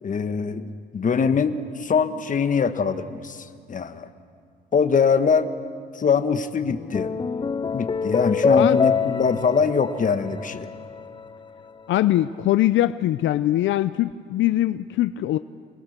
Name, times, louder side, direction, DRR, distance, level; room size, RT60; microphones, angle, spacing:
voice 1, 0.0-4.1 4.7-5.5 5.9-7.1 7.7-10.7, left 5 dB, 40° left, 9 dB, 1.4 m, -23 dB
sound 1, 6.7-11.3, left 5 dB, 25° left, 0.5 m, -25 dB
voice 2, 11.9-15.4, left 14 dB, 75° left, 13 dB, 0.5 m, -22 dB
28.5 x 20.5 x 6.7 m, 2.2 s
cardioid pair, 90°, 20 cm